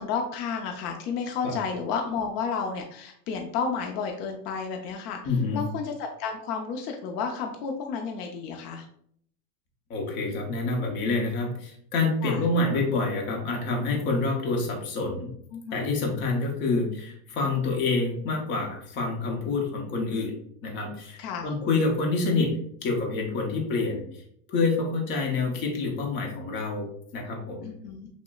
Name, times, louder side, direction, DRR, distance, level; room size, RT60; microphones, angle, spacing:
voice 1, 0.0-5.2 5.5-8.9 12.2-12.4 15.5-15.9 21.2-21.5 27.6-28.1, left 5 dB, 85° left, 3 dB, 0.7 m, -31 dB
voice 2, 5.2-5.6 9.9-15.3 15.7-20.3 20.6-22.5 22.8-24.2 24.5-27.7, left 3 dB, 25° left, 0 dB, 0.7 m, -27 dB
6.1 x 2.1 x 2.3 m, 0.66 s
supercardioid pair, 155°, 47 cm